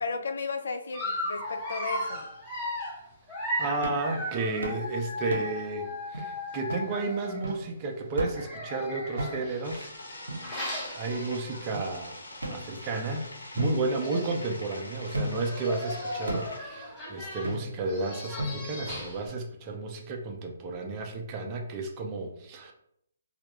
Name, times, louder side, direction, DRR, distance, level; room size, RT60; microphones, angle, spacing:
voice 1, 0.0-2.2, left 4 dB, 65° left, 7 dB, 0.4 m, -34 dB
Dog, 0.9-7.5 8.3-11.9 12.3-12.5 12.8-12.9 13.7-13.8 14.0-14.6 15.2-19.3, left 1 dB, 15° left, 0.7 m, -37 dB
voice 2, 3.4-9.9 11.0-12.2 12.5-13.3 13.5-22.7, right 3 dB, 25° right, 3 dB, 0.4 m, -32 dB
sound 1, 3.8-4.1 4.6-4.9 5.3-5.7 6.1-6.2 6.7-6.9 7.4-7.7 8.2-8.5 9.2-9.6 10.3-11.0 11.7-11.8 12.4-13.1 13.6-14.6 15.1-15.6 16.3-16.6 17.4-17.9 18.4-18.9, equal, 85° right, 0.7 m, -35 dB
sound 2, 9.6-16.6, left 1 dB, 85° left, 0.8 m, -44 dB
2.2 x 2.0 x 3.0 m, 0.72 s
hypercardioid pair, 150°, 0 cm